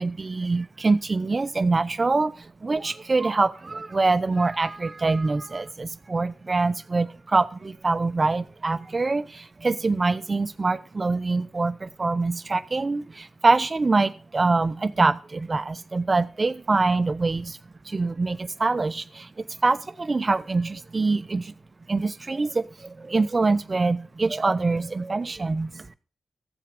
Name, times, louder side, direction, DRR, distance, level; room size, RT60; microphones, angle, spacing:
voice 1, 0.0-17.6 17.8-21.5 21.9-25.9, right 3 dB, 40° right, 13 dB, 0.9 m, -24 dB
14.0 x 7.7 x 5.1 m, 0.38 s
supercardioid pair, 40°, 0 cm